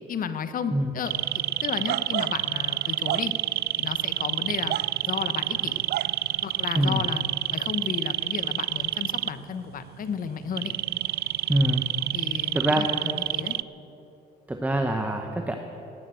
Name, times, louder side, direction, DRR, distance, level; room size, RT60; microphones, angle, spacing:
voice 1, 0.1-3.3 3.8-4.8 5.1-5.8 6.4-7.2 7.5-10.8 12.1-13.5, left 7 dB, 50° left, 11 dB, 1.1 m, -33 dB
sound 1, 1.1-13.6, right 15 dB, 60° right, 0.4 m, -28 dB
voice 2, 11.5-11.9 12.5-12.9 14.5-15.6, right 1 dB, 10° right, 4 dB, 1.0 m, -24 dB
18.5 x 9.6 x 7.8 m, 3.0 s
cardioid pair, 110°, 18 cm